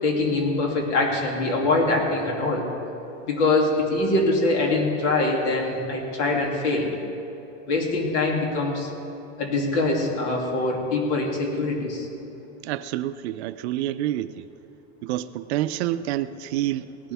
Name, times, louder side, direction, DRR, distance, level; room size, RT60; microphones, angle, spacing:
voice 1, 0.0-2.7 3.2-6.9 7.7-8.9 9.4-12.1, left 2 dB, 65° left, 0 dB, 2.7 m, -23 dB
voice 2, 12.6-14.5 15.0-17.1, right 13 dB, 60° right, 13 dB, 0.5 m, -28 dB
18.5 x 11.5 x 3.5 m, 3.0 s
supercardioid pair, 170°, 37 cm